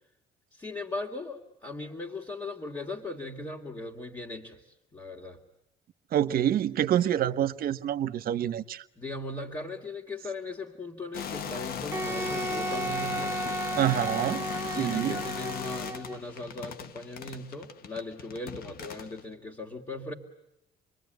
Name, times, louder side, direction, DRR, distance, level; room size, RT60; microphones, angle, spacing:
voice 1, 0.5-4.6 4.9-5.4 9.0-13.6 14.7-20.1, left 2 dB, 20° left, 2.8 m, -38 dB
voice 2, 6.1-8.8 13.8-14.5 14.8-15.2, right 11 dB, 60° right, 1.1 m, -27 dB
sound 1, 11.1-19.2, left 8 dB, 65° left, 1.4 m, -38 dB
Wind instrument woodwind instrument, 11.9-16.2, right 2 dB, 15° right, 1.0 m, -34 dB
29.0 x 22.0 x 9.4 m
cardioid pair, 110°, 17 cm